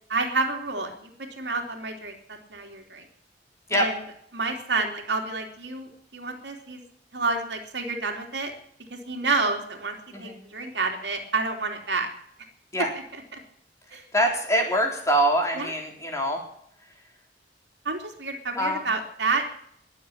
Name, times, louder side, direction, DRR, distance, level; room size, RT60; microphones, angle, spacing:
voice 1, 0.1-3.0 3.7-4.0 4.3-6.8 7.1-8.5 8.9-12.1 13.3-13.4 13.9-14.0 15.6-15.7 17.8-19.5, right 3 dB, 80° right, 3 dB, 2.9 m, -29 dB
voice 2, 13.9-16.4 18.6-18.9, right 1 dB, 20° left, 1 dB, 3.8 m, -24 dB
21.0 x 7.6 x 8.7 m, 0.65 s
head